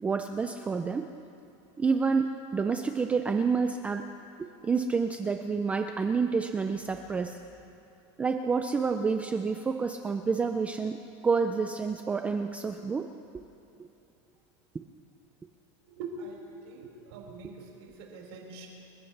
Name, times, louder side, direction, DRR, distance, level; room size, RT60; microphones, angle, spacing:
voice 1, 0.0-1.1 1.8-4.1 4.4-7.4 8.2-13.1 13.8-13.9 14.7-14.8, right 5 dB, 10° right, 6 dB, 0.3 m, -29 dB
voice 2, 15.9-18.7, right 3 dB, 65° right, -2 dB, 4.8 m, -43 dB
29.0 x 15.0 x 3.3 m, 2.8 s
supercardioid pair, 170°, 15 cm